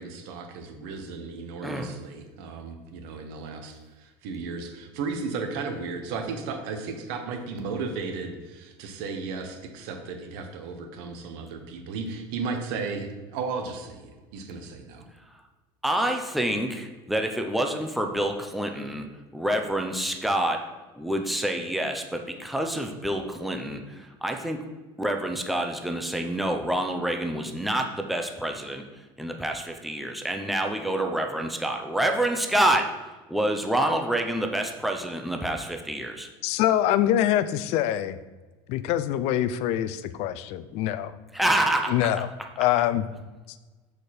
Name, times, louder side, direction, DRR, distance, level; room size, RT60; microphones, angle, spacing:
voice 1, 0.0-15.0, right 4 dB, 70° right, 5 dB, 1.2 m, -35 dB
voice 2, 1.6-2.0 15.8-20.6 21.0-24.6 25.0-28.8 29.2-32.9 33.3-36.3 41.3-42.1, right 1 dB, ahead, 3 dB, 0.6 m, -27 dB
voice 3, 36.4-38.2 38.7-41.1 41.9-42.3 42.6-43.0, left 12 dB, 55° left, 14 dB, 0.4 m, -24 dB
6.3 x 5.0 x 4.3 m, 1.2 s
supercardioid pair, 130°, 13 cm